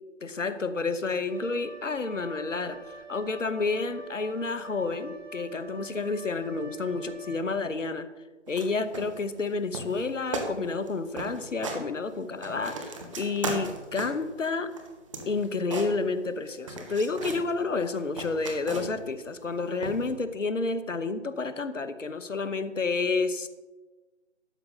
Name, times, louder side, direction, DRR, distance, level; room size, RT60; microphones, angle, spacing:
voice 1, 0.2-2.8 3.1-8.1 8.5-14.7 15.3-23.5, left 4 dB, 80° left, 12 dB, 1.1 m, -30 dB
Wind instrument woodwind instrument, 1.3-7.8, right 3 dB, 80° right, 2.5 m, -46 dB
sound 1, 8.5-8.7 8.9-9.5 9.7-10.1 10.3-10.5 10.8-10.9 11.2-11.8 12.2-14.3 14.7-16.4 16.7-17.4 17.8-19.1 19.8-20.1, right 3 dB, 25° right, 1.4 m, -36 dB
12.5 x 8.3 x 5.5 m, 1.2 s
figure-of-eight pair, 155°, 37 cm